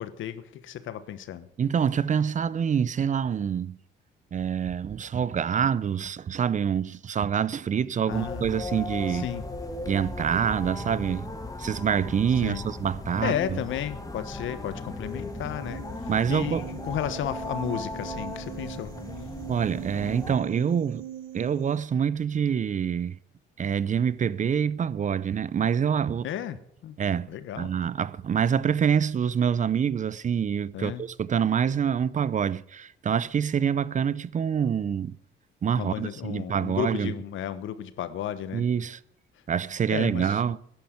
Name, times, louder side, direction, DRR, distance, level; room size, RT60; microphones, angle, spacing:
voice 1, 0.0-1.5 8.1-8.6 9.1-9.5 12.4-12.6 13.2-18.9 26.2-26.9 27.3-27.7 30.7-31.1 35.8-38.7 39.9-40.4, left 10 dB, 80° left, 1.2 m, -33 dB
voice 2, 1.6-3.8 4.3-9.3 9.9-11.3 11.6-13.6 16.1-16.6 19.5-21.1 21.3-23.2 23.6-26.3 27.0-27.3 27.6-35.2 35.6-37.1 38.5-39.0 39.5-40.6, right 7 dB, 40° right, 0.5 m, -26 dB
sound 1, 8.1-20.3, left 2 dB, 15° left, 2.1 m, -37 dB
sound 2, 15.0-21.8, right 12 dB, 85° right, 1.0 m, -42 dB
11.0 x 10.5 x 7.9 m
cardioid pair, 90°, 20 cm